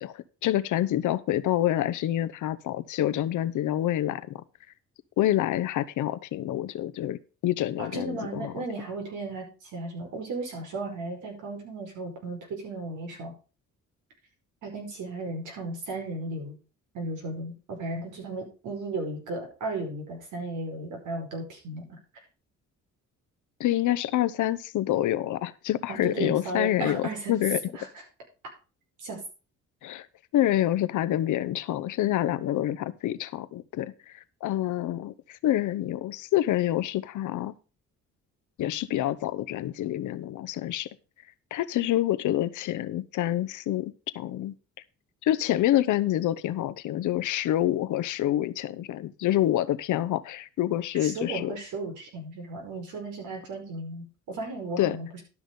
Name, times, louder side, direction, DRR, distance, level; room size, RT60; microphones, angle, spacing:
voice 1, 0.0-4.4 5.2-8.6 23.6-27.6 29.8-30.1 30.3-37.5 38.6-40.9 41.5-44.5 45.2-51.6 54.8-55.0, left 13 dB, 80° left, 15 dB, 0.9 m, -27 dB
voice 2, 7.8-13.3 14.6-16.6 16.9-22.0 25.9-27.4 27.7-27.9 29.0-29.2 51.0-55.2, right 2 dB, 80° right, 1 dB, 4.9 m, -35 dB
12.0 x 6.1 x 5.3 m, 0.34 s
cardioid pair, 90°, 30 cm